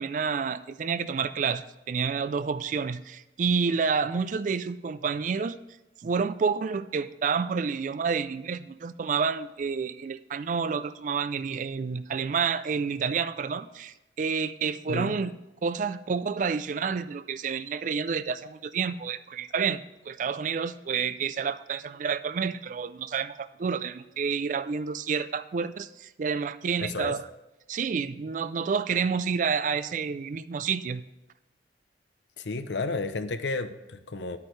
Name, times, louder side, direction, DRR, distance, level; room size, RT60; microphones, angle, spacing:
voice 1, 0.0-5.6 6.0-15.3 15.6-19.8 20.1-27.3 27.7-31.0, right 5 dB, 45° right, 14 dB, 0.3 m, -29 dB
voice 2, 26.8-27.2 32.4-34.4, left 3 dB, 80° left, 10 dB, 0.7 m, -32 dB
11.0 x 8.4 x 3.2 m, 1.0 s
head